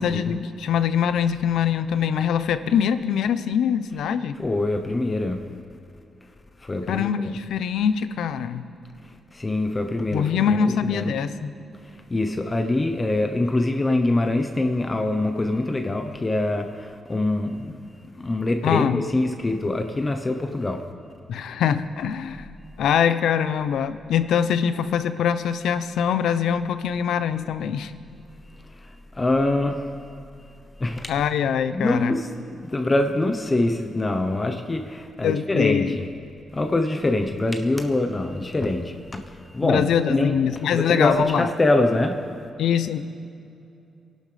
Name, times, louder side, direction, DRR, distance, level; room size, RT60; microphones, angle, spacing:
voice 1, 0.0-4.3 6.9-8.6 10.1-11.5 18.6-19.0 21.3-22.5 22.8-27.9 31.1-32.1 35.2-36.0 39.6-41.5 42.6-43.0, left 8 dB, 85° left, 11 dB, 0.7 m, -23 dB
voice 2, 4.4-5.4 6.6-7.1 9.0-11.1 11.8-17.8 18.1-20.8 28.7-29.9 30.8-31.1 31.7-36.0 36.5-40.4 40.7-42.2, left 2 dB, 20° left, 5 dB, 0.9 m, -24 dB
27.0 x 11.5 x 3.4 m, 2.6 s
cardioid pair, 115°, 0 cm